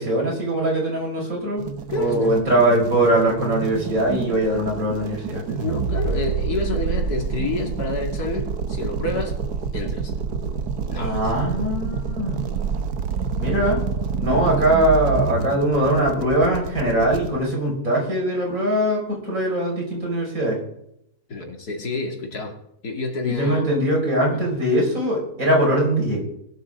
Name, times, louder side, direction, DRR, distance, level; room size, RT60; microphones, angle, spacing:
voice 1, 0.0-5.4 10.9-12.4 13.4-13.8 14.2-20.6 23.2-26.2, right 1 dB, 55° right, -1 dB, 6.0 m, -21 dB
sound 1, 1.6-17.3, right 6 dB, 80° right, 1.6 m, -28 dB
voice 2, 1.9-2.4 5.5-9.4 9.7-10.1 10.9-11.2 21.3-22.6 22.8-23.7 24.3-24.5, left 3 dB, 75° left, 2 dB, 2.9 m, -28 dB
20.0 x 12.5 x 3.8 m, 0.76 s
omnidirectional pair, 1.7 m